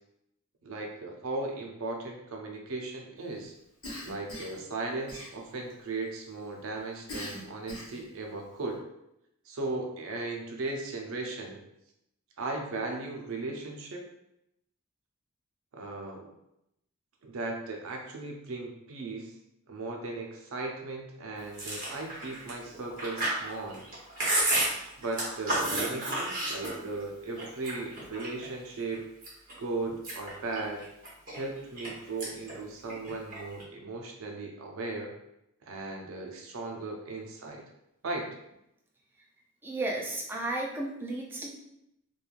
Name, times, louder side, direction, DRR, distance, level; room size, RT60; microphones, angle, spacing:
voice 1, 0.6-3.5 4.1-8.8 9.5-11.6 12.4-14.0 15.7-16.3 17.2-19.3 19.7-23.8 25.0-29.1 29.6-30.8 31.4-35.1 35.6-37.6 38.0-38.3, right 3 dB, 75° right, 1 dB, 0.5 m, -37 dB
Cough, 3.8-4.6 5.1-5.7 7.1-8.1, left 1 dB, 85° left, 0.9 m, -41 dB
Chewing mastication, 21.5-27.0 27.4-28.5 28.9-29.5 29.9-31.9 32.2-32.5 32.8-33.6, right 1 dB, 40° right, 0.9 m, -31 dB
voice 2, 39.6-41.5, right 2 dB, 10° right, -2 dB, 0.3 m, -33 dB
3.0 x 2.2 x 2.4 m, 0.83 s
head